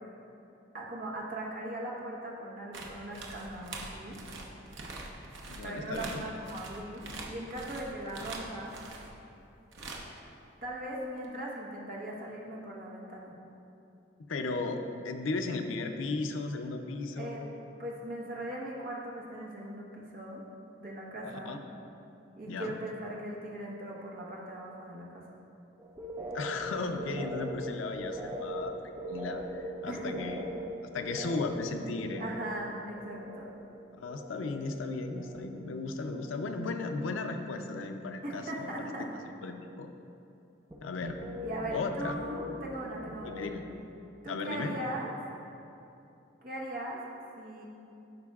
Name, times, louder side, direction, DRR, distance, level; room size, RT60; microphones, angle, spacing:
voice 1, 0.7-4.2 5.6-8.8 10.6-13.3 17.2-17.4 17.8-20.4 20.8-21.6 22.4-25.3 29.9-30.1 32.2-33.6 38.2-39.1 41.4-43.5 44.2-45.1 46.4-47.0 47.4-47.7, right 1 dB, 45° right, -3 dB, 1.0 m, -39 dB
sound 1, 2.7-9.1 9.7-10.2 11.2-11.4, right 3 dB, 70° right, 0.8 m, -43 dB
voice 2, 5.5-6.2 14.3-17.4 21.2-21.6 22.5-22.8 26.3-30.5 30.9-32.3 34.0-38.9 39.4-39.9 40.8-41.2 41.7-42.1 43.2-43.6 44.3-44.7, left 3 dB, 85° left, 5 dB, 0.5 m, -35 dB
sound 2, 25.8-34.7 35.0-35.7 36.0-36.7 37.0-37.4 40.7-43.9, equal, 15° right, 0.4 m, -41 dB
11.5 x 5.1 x 2.4 m, 2.8 s
head